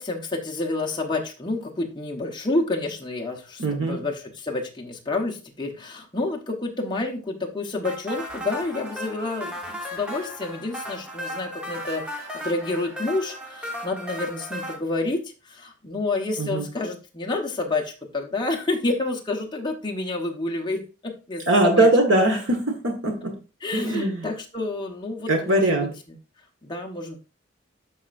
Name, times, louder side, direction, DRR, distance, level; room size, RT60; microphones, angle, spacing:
voice 1, 0.0-21.9 23.6-25.8 26.6-27.2, left 2 dB, 25° left, 1 dB, 1.1 m, -29 dB
voice 2, 3.6-4.0 16.4-16.7 21.5-23.3 23.7-24.3 25.3-25.9, right 1 dB, 85° right, 2 dB, 1.5 m, -21 dB
sound 1, 7.8-14.8, equal, 5° right, 1.2 m, -35 dB
12.5 x 4.3 x 2.6 m, 0.32 s
head